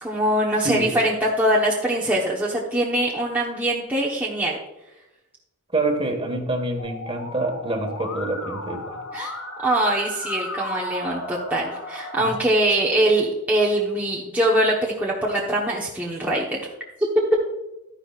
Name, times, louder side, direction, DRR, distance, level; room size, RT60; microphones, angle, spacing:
voice 1, 0.0-4.6 9.1-9.3 9.6-16.6, right 1 dB, 10° right, -5 dB, 1.1 m, -23 dB
voice 2, 5.7-9.0 12.2-12.3, right 2 dB, 25° right, 4 dB, 1.6 m, -26 dB
Musical instrument, 6.8-12.4, left 2 dB, 80° left, 3.0 m, -34 dB
12.0 x 10.0 x 2.5 m, 0.94 s
head